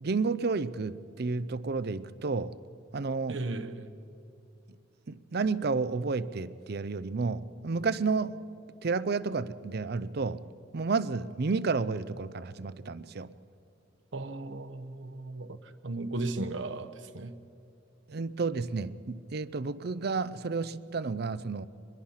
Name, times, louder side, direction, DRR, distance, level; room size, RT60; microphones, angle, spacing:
voice 1, 0.0-2.6 2.9-3.4 5.1-8.4 8.8-10.5 10.7-13.3 18.1-21.7, right 4 dB, 55° right, 0.6 m, -31 dB
voice 2, 3.3-3.9 14.1-17.4, right 2 dB, 75° right, 1.0 m, -36 dB
23.0 x 21.5 x 5.7 m
head